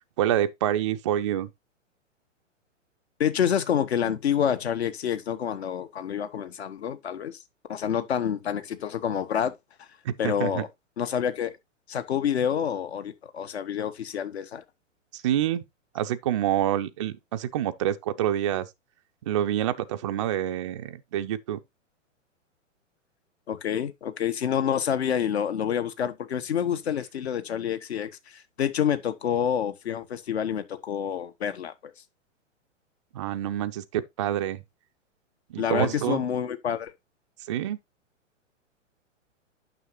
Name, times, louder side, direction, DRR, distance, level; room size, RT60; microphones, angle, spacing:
voice 1, 0.2-1.5 10.1-10.6 15.1-15.6 15.9-18.7 19.3-21.6 33.1-34.6 35.5-36.2 37.5-37.8, right 11 dB, 25° right, 0.4 m, -27 dB
voice 2, 3.2-7.4 7.7-9.5 10.2-10.7 11.0-11.5 11.9-14.6 23.5-31.9 35.6-36.9, left 8 dB, 55° left, 1.1 m, -28 dB
9.3 x 6.2 x 2.9 m
figure-of-eight pair, 110°, 38 cm